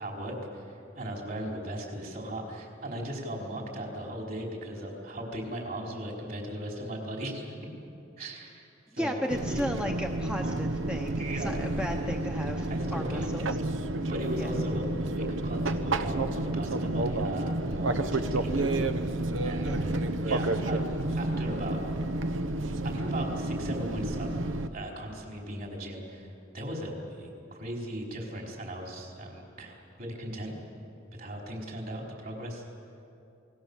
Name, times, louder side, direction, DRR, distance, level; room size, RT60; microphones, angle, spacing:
voice 1, 0.0-7.6 8.2-8.7 8.9-9.6 11.2-11.6 12.7-13.3 14.1-18.8 19.4-20.8 21.1-21.8 22.8-26.3 26.5-30.6 31.2-32.6, right 1 dB, 50° right, -1 dB, 4.8 m, -38 dB
voice 2, 9.0-13.6 14.4-14.5 19.6-19.8, equal, 5° right, 2 dB, 0.9 m, -35 dB
Fixed-wing aircraft airplane, 9.3-24.7, right 2 dB, 80° right, 1.0 m, -30 dB
28.0 x 20.0 x 7.3 m, 2.7 s
head